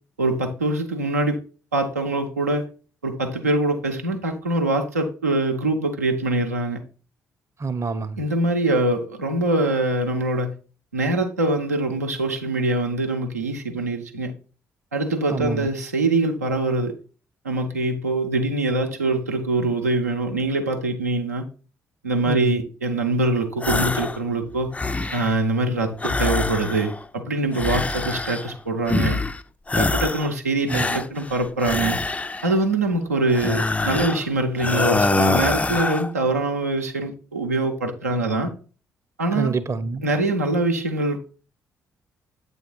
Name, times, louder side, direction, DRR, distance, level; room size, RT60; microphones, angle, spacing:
voice 1, 0.2-1.4 1.7-2.6 3.0-6.8 8.2-10.5 10.9-14.3 14.9-17.0 17.4-21.4 22.0-24.7 25.1-29.2 29.8-32.0 32.4-38.5 39.2-39.5 40.0-41.2, right 2 dB, 85° right, 0.7 m, -23 dB
voice 2, 7.6-8.2 15.3-15.7 22.3-22.6 30.7-31.0 39.3-40.1, right 4 dB, 35° right, 0.7 m, -27 dB
sound 1, 23.6-24.2 24.5-25.4 26.0-27.0 27.5-28.5 28.9-29.4 29.7-30.3 30.7-32.5 33.3-34.3 34.6-36.1, left 3 dB, 15° left, 0.4 m, -24 dB
8.3 x 3.6 x 3.9 m
figure-of-eight pair, 40°, 8 cm